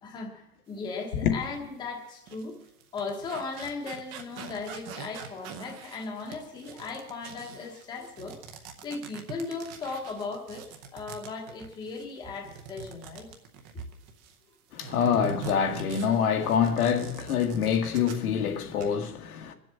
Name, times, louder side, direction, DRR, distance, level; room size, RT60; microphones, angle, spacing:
voice 1, 0.0-2.6 2.9-8.4 8.8-13.3, left 4 dB, 10° left, 1.1 m, -37 dB
sound 1, 1.4-1.6 2.1-14.4 14.8-18.4 18.6-18.8, right 6 dB, 20° right, 0.7 m, -44 dB
voice 2, 14.7-19.5, left 7 dB, 75° left, 1.9 m, -26 dB
22.5 x 7.7 x 7.6 m
supercardioid pair, 180°, 44 cm